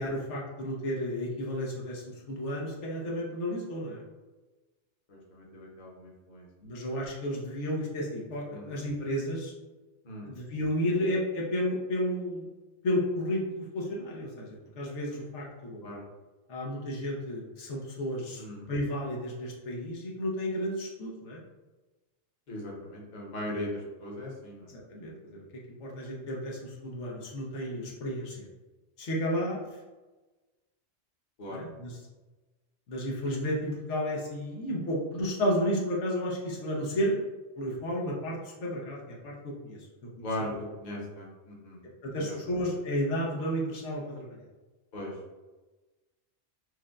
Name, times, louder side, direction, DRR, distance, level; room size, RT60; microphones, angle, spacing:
voice 1, 0.0-4.0 6.6-9.5 10.2-12.5 12.8-15.9 16.5-21.4 24.7-25.4 25.8-28.4 29.0-29.6 31.5-31.9 32.9-37.3 37.6-40.2 42.0-44.4, equal, 85° left, -3 dB, 1.2 m, -32 dB
voice 2, 5.1-6.5 8.5-8.8 10.0-10.3 15.8-16.0 18.4-18.7 22.5-24.7 31.4-31.6 40.2-41.8 42.1-42.4 44.9-45.2, left 1 dB, 45° left, -3 dB, 0.9 m, -39 dB
6.1 x 2.2 x 2.4 m, 1.2 s
omnidirectional pair, 1.2 m